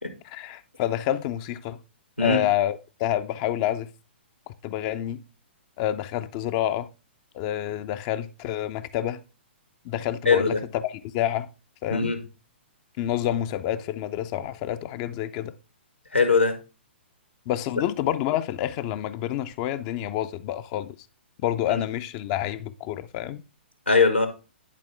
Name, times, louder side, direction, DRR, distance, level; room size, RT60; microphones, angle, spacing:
voice 1, 0.2-1.8 2.2-3.9 4.5-5.2 5.8-6.9 7.3-9.2 9.9-11.5 11.8-12.1 13.0-15.5 17.5-21.0 21.4-23.4, left 12 dB, 30° left, 0.4 m, -28 dB
voice 2, 10.3-10.6 11.9-12.2 16.1-16.5 21.7-21.8 23.9-24.3, left 4 dB, 85° left, 1.8 m, -20 dB
10.5 x 4.1 x 3.5 m
figure-of-eight pair, 115°, 6 cm